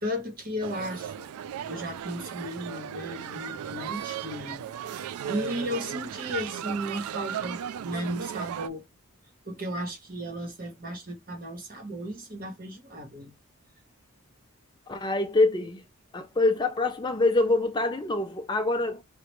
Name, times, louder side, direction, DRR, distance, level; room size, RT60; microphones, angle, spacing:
voice 1, 0.0-1.3 1.7-4.7 5.3-8.9 9.4-13.3, equal, 40° right, 1.1 m, -35 dB
sound 1, 0.6-8.7, right 9 dB, 85° right, 0.3 m, -36 dB
voice 2, 14.9-15.8 16.1-19.0, left 2 dB, 20° left, 0.4 m, -25 dB
4.7 x 3.2 x 3.1 m
head